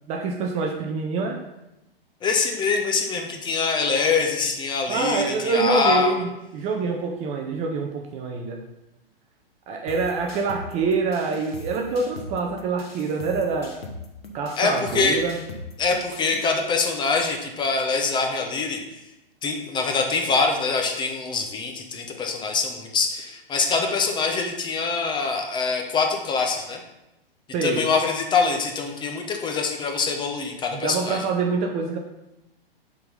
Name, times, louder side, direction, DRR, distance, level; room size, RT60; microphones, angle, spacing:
voice 1, 0.1-1.4 4.9-8.6 9.7-13.8 14.3-15.4 27.5-27.8 30.7-32.0, right 4 dB, 25° right, 2 dB, 0.5 m, -26 dB
voice 2, 2.2-6.1 14.6-15.2 15.8-18.8 19.4-26.8 27.6-31.2, left 4 dB, 15° left, 3 dB, 0.7 m, -24 dB
sound 1, 9.9-16.5, left 3 dB, 85° left, 1.2 m, -40 dB
6.6 x 3.8 x 5.4 m, 0.93 s
hypercardioid pair, 115°, 29 cm